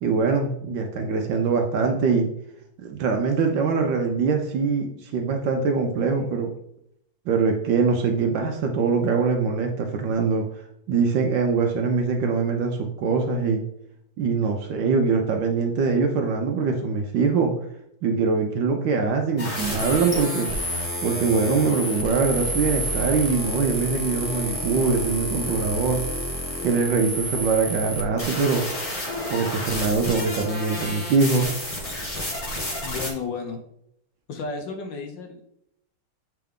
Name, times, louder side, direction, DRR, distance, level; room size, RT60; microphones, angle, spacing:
voice 1, 0.0-2.3 2.8-6.5 7.3-10.4 10.9-13.6 14.2-17.5 18.0-20.5 21.0-26.0 26.6-28.6 29.3-31.5, right 4 dB, 70° right, 3 dB, 1.2 m, -23 dB
sound 1, 19.4-33.1, equal, 30° left, 0.6 m, -30 dB
voice 2, 32.8-33.6 34.3-35.4, left 4 dB, 65° left, 4 dB, 1.3 m, -32 dB
7.5 x 3.4 x 3.6 m, 0.75 s
omnidirectional pair, 2.4 m